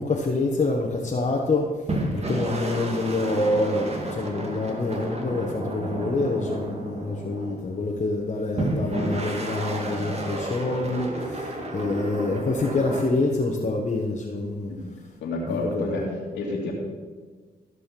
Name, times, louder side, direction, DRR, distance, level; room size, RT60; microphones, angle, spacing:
voice 1, 0.0-1.7 2.1-14.7 15.5-15.9, left 2 dB, 40° left, -1 dB, 1.5 m, -26 dB
sound 1, 1.9-7.8 8.6-13.1, right 1 dB, 35° right, 2.1 m, -31 dB
voice 2, 15.2-16.7, left 2 dB, 90° left, -2 dB, 2.7 m, -29 dB
15.5 x 5.6 x 6.0 m, 1.5 s
supercardioid pair, 60°, 18 cm